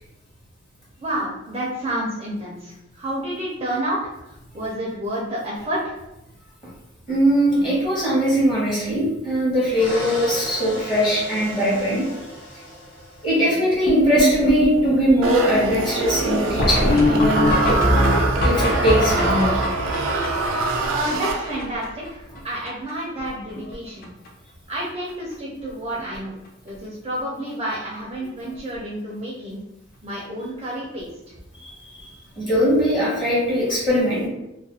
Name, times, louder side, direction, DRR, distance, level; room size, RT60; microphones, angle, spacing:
voice 1, 1.0-4.0 4.2-6.0 20.8-24.1 24.7-26.4 26.6-29.6 30.0-31.1, right 1 dB, 25° right, -5 dB, 0.5 m, -29 dB
voice 2, 7.1-12.0 13.2-17.8 18.4-19.6 31.5-32.1 32.4-34.3, equal, 25° left, -8 dB, 0.9 m, -21 dB
sound 1, 9.7-13.6, left 1 dB, 80° left, 1.3 m, -35 dB
sound 2, 13.9-22.1 22.4-22.5 22.7-22.9 23.2-23.7 24.0-24.3 25.1-25.2 25.6-25.7 26.0-26.1 28.4-28.5 30.8-30.9, left 1 dB, 50° left, 0.4 m, -23 dB
sound 3, 15.2-21.8, right 3 dB, 85° right, 0.4 m, -25 dB
2.4 x 2.2 x 2.7 m, 0.94 s
head